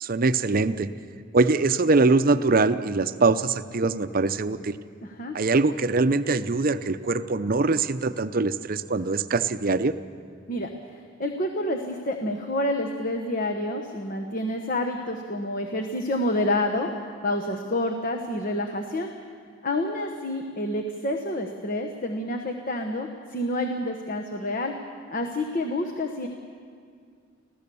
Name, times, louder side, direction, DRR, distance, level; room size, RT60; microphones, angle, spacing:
voice 1, 0.0-0.9 1.3-4.8 5.3-9.9, right 3 dB, 45° right, 12 dB, 0.7 m, -23 dB
voice 2, 5.0-5.4 10.5-16.9 17.2-19.1 19.6-24.8 25.1-26.3, left 1 dB, 45° left, 4 dB, 1.1 m, -28 dB
26.0 x 16.0 x 7.0 m, 2.2 s
head